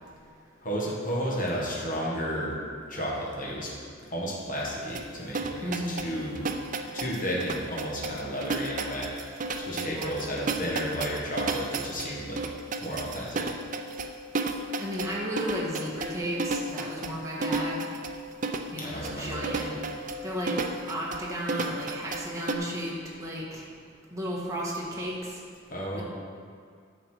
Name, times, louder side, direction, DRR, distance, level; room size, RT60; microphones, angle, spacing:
voice 1, 0.6-2.6 2.9-3.7 4.1-9.1 9.6-12.4 12.8-13.5 18.8-19.6 25.7-26.0, equal, 40° left, -5 dB, 1.8 m, -32 dB
sound 1, 4.9-22.5, right 3 dB, 40° right, 0.5 m, -33 dB
voice 2, 5.6-6.0 9.8-10.1 14.8-17.8 18.7-19.8 20.2-20.5 20.9-23.6 24.1-25.2 25.9-26.0, equal, 15° right, -5 dB, 1.6 m, -34 dB
9.8 x 7.0 x 4.7 m, 2.2 s
head